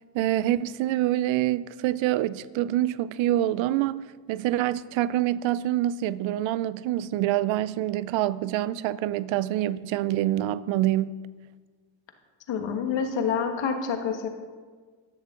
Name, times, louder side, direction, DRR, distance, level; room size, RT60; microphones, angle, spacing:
voice 1, 0.1-4.0 4.3-11.2, right 14 dB, 85° right, 0.5 m, -26 dB
voice 2, 12.5-14.3, left 6 dB, 70° left, 1.5 m, -27 dB
13.0 x 10.5 x 3.7 m
cardioid pair, 80°, 45 cm